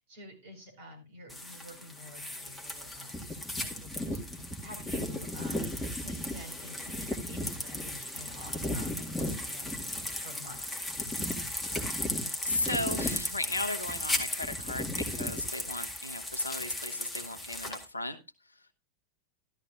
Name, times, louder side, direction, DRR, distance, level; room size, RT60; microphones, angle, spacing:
voice 1, 0.1-9.7 10.2-10.8, equal, 55° right, 4 dB, 4.7 m, -49 dB
sound 1, 1.3-17.9, left 1 dB, 5° left, 2.0 m, -35 dB
voice 2, 12.4-18.2, left 2 dB, 80° left, 10 dB, 1.1 m, -35 dB
13.0 x 13.0 x 2.5 m, 0.24 s
figure-of-eight pair, 90°, 0 cm